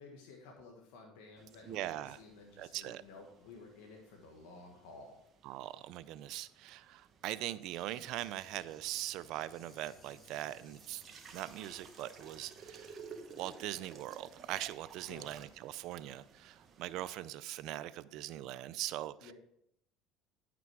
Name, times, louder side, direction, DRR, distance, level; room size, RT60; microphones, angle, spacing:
voice 1, 0.0-5.2 15.0-15.3 19.2-19.3, left 3 dB, 80° left, 1 dB, 1.4 m, -53 dB
sound 1, 1.4-17.1, right 5 dB, 40° right, 1.1 m, -56 dB
voice 2, 1.7-2.2 2.6-3.0 5.4-11.0 11.3-13.0 13.4-19.3, right 14 dB, 65° right, 15 dB, 0.4 m, -41 dB
sound 2, 7.7-13.1, equal, 5° left, 2.0 m, -64 dB
sound 3, 9.2-14.8 15.1-15.2, left 2 dB, 35° left, 3.3 m, -68 dB
9.2 x 6.0 x 4.7 m, 0.76 s
supercardioid pair, 95°, 0 cm